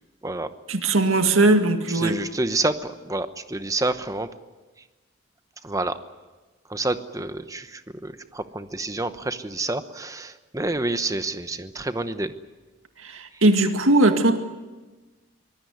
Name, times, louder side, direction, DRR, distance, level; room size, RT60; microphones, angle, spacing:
voice 1, 0.7-2.2 13.0-14.4, right 2 dB, 90° right, 6 dB, 2.0 m, -19 dB
voice 2, 1.9-4.3 5.6-6.0 6.7-12.3, right 2 dB, 15° right, 10 dB, 1.0 m, -28 dB
24.0 x 18.0 x 9.4 m, 1.2 s
head